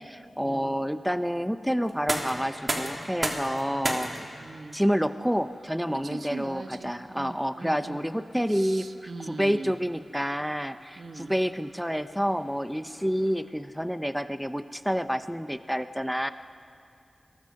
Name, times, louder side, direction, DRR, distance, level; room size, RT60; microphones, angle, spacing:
voice 1, 0.0-4.1 4.7-8.9 9.3-16.3, equal, ahead, 10 dB, 0.8 m, -28 dB
sound 1, 1.8-13.6, right 1 dB, 35° right, 3.6 m, -38 dB
voice 2, 4.4-4.8 6.0-8.0 8.5-9.7 10.9-11.3, right 3 dB, 70° right, 6 dB, 1.5 m, -41 dB
28.5 x 23.0 x 6.5 m, 2.4 s
wide cardioid pair, 70°, 0 cm